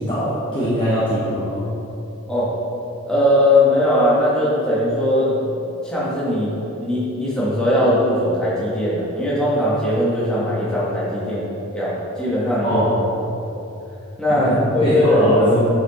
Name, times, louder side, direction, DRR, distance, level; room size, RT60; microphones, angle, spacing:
voice 1, 0.0-1.6 12.6-13.1 14.3-15.6, equal, 25° left, -10 dB, 1.2 m, -21 dB
voice 2, 3.1-5.4 5.8-6.5 6.8-11.5 11.7-12.8 14.2-15.3, left 1 dB, 5° left, -9 dB, 1.8 m, -19 dB
7.7 x 5.9 x 4.3 m, 2.9 s
head